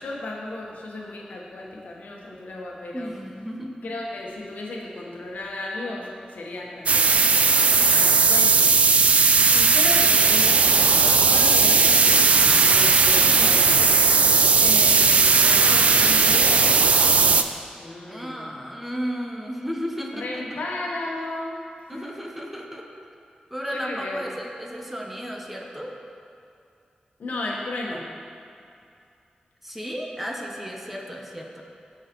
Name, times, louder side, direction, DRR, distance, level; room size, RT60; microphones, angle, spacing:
voice 1, 0.0-3.2 3.8-7.2 7.6-8.7 9.4-12.1 12.5-13.9 14.6-17.3 17.8-18.5 20.1-22.1 23.7-24.3 27.2-28.1, left 2 dB, 80° left, -2 dB, 1.1 m, -34 dB
voice 2, 2.9-3.8 7.7-8.2 18.1-20.6 21.9-22.9 23.5-25.9 27.4-27.5 27.9-28.1 29.6-31.6, equal, 5° right, 0 dB, 0.6 m, -34 dB
sound 1, 6.9-17.4, right 4 dB, 55° right, 0.3 m, -17 dB
13.0 x 4.9 x 3.0 m, 2.5 s
wide cardioid pair, 145°, 3 cm